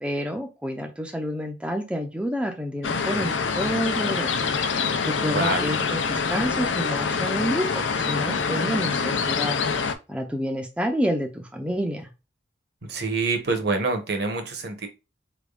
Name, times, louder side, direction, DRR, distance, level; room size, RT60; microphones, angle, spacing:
voice 1, 0.0-12.1, equal, 5° right, 0.5 m, -29 dB
sound 1, 2.8-9.9, left 5 dB, 85° left, 0.6 m, -25 dB
voice 2, 5.3-5.7 12.9-14.9, right 3 dB, 60° right, 1.0 m, -26 dB
4.5 x 3.5 x 2.3 m
head